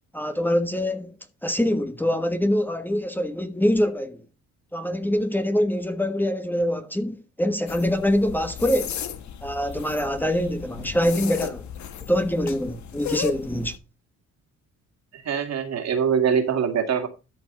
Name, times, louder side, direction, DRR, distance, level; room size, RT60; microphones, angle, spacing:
voice 1, 0.1-1.1 1.4-4.2 4.7-8.9 9.4-11.7 12.1-13.8, equal, 5° left, 1.3 m, -24 dB
sound 1, 7.7-13.7, left 8 dB, 70° left, 1.5 m, -35 dB
voice 2, 15.1-17.1, right 7 dB, 60° right, 2.4 m, -23 dB
13.0 x 4.7 x 5.4 m
cardioid pair, 90°, 30 cm